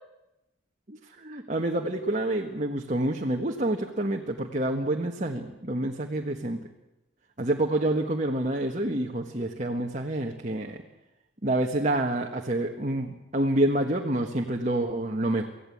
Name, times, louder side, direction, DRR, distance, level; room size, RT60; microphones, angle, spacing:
voice 1, 0.9-6.6 7.4-10.8 11.4-15.5, right 1 dB, 35° right, 2 dB, 1.5 m, -28 dB
25.0 x 16.0 x 8.6 m, 0.97 s
head